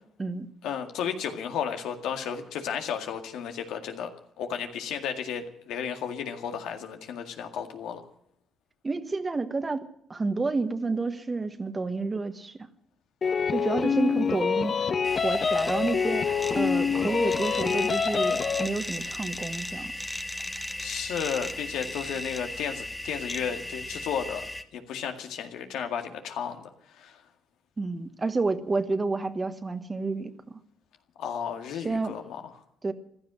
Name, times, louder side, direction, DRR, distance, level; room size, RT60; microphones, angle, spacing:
voice 1, 0.6-4.1 4.4-8.0 20.8-24.5 24.7-26.6 26.9-27.2 31.2-32.4, left 7 dB, 85° left, 5 dB, 2.0 m, -33 dB
voice 2, 8.8-12.5 13.5-14.9 15.2-19.9 27.8-30.3 31.8-32.1 32.8-32.9, right 3 dB, 25° right, 10 dB, 1.4 m, -30 dB
sound 1, 13.2-18.7, left 6 dB, 45° left, 1.1 m, -26 dB
sound 2, 15.0-24.6, left 1 dB, 10° left, 1.2 m, -36 dB
15.5 x 12.0 x 7.6 m, 0.70 s
cardioid pair, 90°, 0 cm